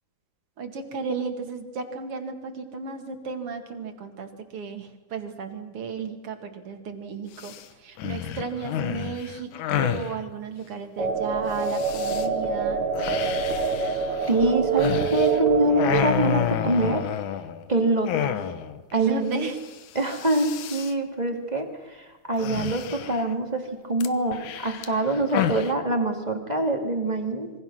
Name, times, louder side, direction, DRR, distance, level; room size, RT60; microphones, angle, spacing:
voice 1, 0.6-12.9 18.9-19.6, right 5 dB, 50° right, 5 dB, 2.8 m, -34 dB
sound 1, 7.4-7.6 8.0-10.1 11.6-12.3 13.0-15.4 15.7-17.6 18.0-18.8 19.1-19.2 19.4-19.7 20.0-20.9 22.4-23.3 24.0-25.7, left 10 dB, 75° left, 2.5 m, -30 dB
sound 2, 11.0-16.0, right 6 dB, 65° right, 3.1 m, -25 dB
voice 2, 14.3-17.0 17.7-18.4 18.9-19.4 19.9-27.5, right 1 dB, 15° right, 3 dB, 2.2 m, -25 dB
26.5 x 23.0 x 6.3 m, 1.2 s
omnidirectional pair, 3.5 m